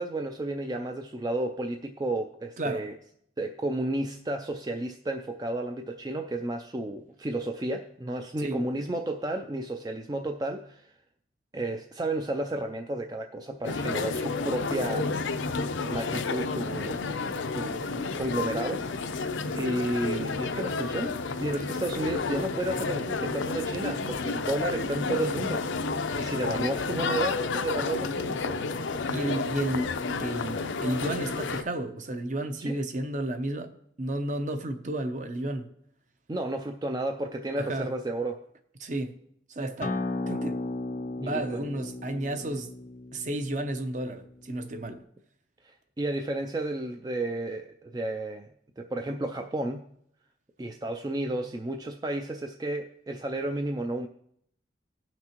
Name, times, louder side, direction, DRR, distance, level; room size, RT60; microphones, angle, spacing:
voice 1, 0.0-2.9 3.4-10.9 11.5-15.1 15.8-17.1 17.4-25.6 26.2-28.6 32.7-32.8 36.3-38.5 41.2-41.7 45.6-48.5 48.8-49.8 50.6-54.1, right 1 dB, 20° right, 0.3 m, -32 dB
voice 2, 2.6-2.9 8.4-8.6 22.7-23.1 23.3-23.5 29.1-29.9 30.2-33.7 34.0-35.7 37.6-37.9 38.8-39.2 39.5-40.0 40.3-40.6 41.2-42.7 43.1-45.0, right 1 dB, 40° right, 0.7 m, -32 dB
sound 1, 13.6-31.6, left 4 dB, 85° left, 0.6 m, -31 dB
Acoustic guitar, 39.8-45.0, left 2 dB, 40° left, 0.5 m, -36 dB
17.5 x 6.0 x 2.9 m
head